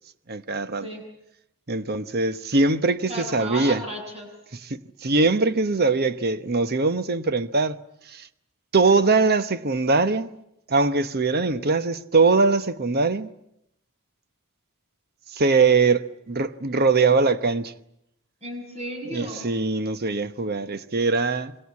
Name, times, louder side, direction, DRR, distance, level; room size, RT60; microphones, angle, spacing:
voice 1, 0.3-0.9 1.7-3.8 4.5-7.8 8.0-8.3 8.7-10.3 10.7-13.3 15.3-17.7 19.1-21.6, right 3 dB, 45° right, 1.1 m, -22 dB
voice 2, 3.1-4.3 18.4-19.5, right 1 dB, 30° right, 7.7 m, -34 dB
27.5 x 23.5 x 8.5 m
head